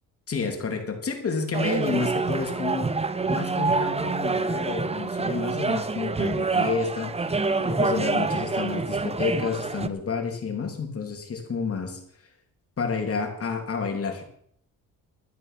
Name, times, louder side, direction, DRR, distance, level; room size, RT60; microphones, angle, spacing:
voice 1, 0.3-2.9 3.3-7.1 7.6-12.0 12.8-14.2, left 5 dB, 45° left, 3 dB, 3.4 m, -30 dB
sound 1, 1.5-9.9, right 3 dB, 20° right, 0.9 m, -26 dB
12.5 x 10.0 x 6.0 m, 0.67 s
cardioid pair, 85°, 33 cm